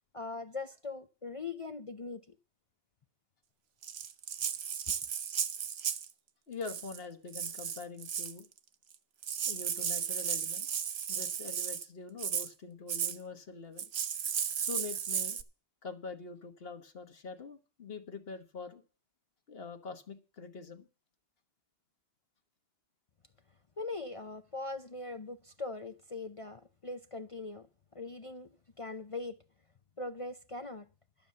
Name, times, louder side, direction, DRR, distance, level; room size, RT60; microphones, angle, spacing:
voice 1, 0.1-2.4 23.8-27.7 27.9-28.5 28.8-29.3 30.0-30.9, left 3 dB, 35° left, 0.6 m, -41 dB
Rattle (instrument), 3.8-6.1 6.6-7.0 7.3-8.4 8.9-9.0 9.2-11.9 12.2-12.5 12.9-13.2 13.8-15.4, right 8 dB, 65° right, 1.0 m, -35 dB
voice 2, 6.5-8.5 9.4-10.7 11.1-13.9 14.6-15.4 15.8-18.8 19.5-20.9, left 4 dB, 55° left, 1.5 m, -44 dB
12.0 x 7.0 x 7.6 m
omnidirectional pair, 1.2 m